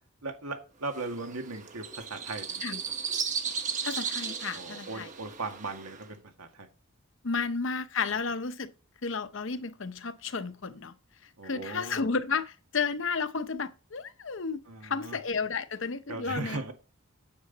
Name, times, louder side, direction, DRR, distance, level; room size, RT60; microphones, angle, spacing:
voice 1, 0.2-2.6 4.5-6.7 8.1-8.2 11.4-12.0 14.7-15.2 16.1-16.7, right 3 dB, 90° right, 1.9 m, -38 dB
sound 1, 0.9-6.1, right 6 dB, 35° right, 1.1 m, -36 dB
voice 2, 3.8-5.1 7.2-8.7 9.0-10.9 11.2-16.6, left 4 dB, 60° left, 0.8 m, -32 dB
9.5 x 7.7 x 4.0 m
head